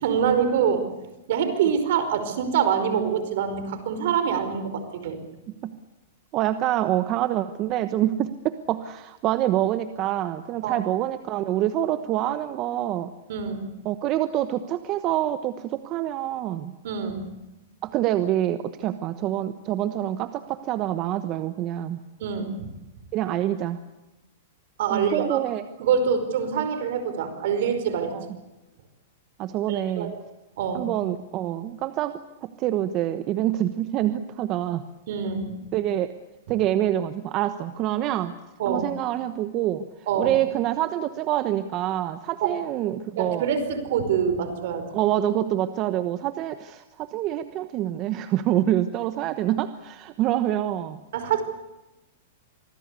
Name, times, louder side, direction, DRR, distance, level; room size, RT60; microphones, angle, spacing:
voice 1, 0.0-0.9 1.3-5.2 10.6-10.8 13.3-13.6 16.8-17.3 22.2-22.7 24.8-25.4 25.8-28.1 29.7-30.2 30.6-30.9 35.1-35.6 38.6-38.9 40.1-40.3 42.4-42.5 43.2-44.9 51.1-51.4, right 7 dB, 65° right, 9 dB, 5.0 m, -25 dB
voice 2, 6.3-13.1 13.8-16.7 17.8-22.0 23.1-23.8 24.9-25.6 28.1-28.2 29.4-30.1 30.7-34.8 35.7-36.1 36.5-38.3 38.7-39.9 40.2-43.5 44.9-51.0, right 13 dB, 35° right, 11 dB, 1.1 m, -26 dB
26.0 x 20.0 x 8.4 m, 1.0 s
hypercardioid pair, 140°, 0 cm